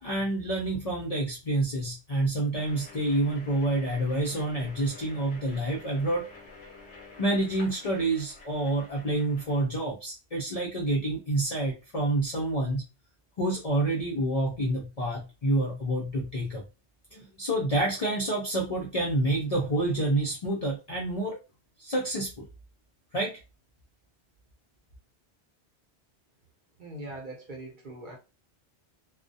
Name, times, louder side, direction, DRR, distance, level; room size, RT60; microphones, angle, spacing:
voice 1, 0.0-6.3 7.2-12.8 13.4-16.6 17.1-21.4 21.8-22.5 23.1-23.4, right 1 dB, 50° left, 0.5 m, -28 dB
sound 1, 2.6-9.6, left 3 dB, 70° left, 0.8 m, -49 dB
voice 2, 26.8-28.2, right 1 dB, 50° right, 0.8 m, -41 dB
2.3 x 2.1 x 2.6 m
omnidirectional pair, 1.2 m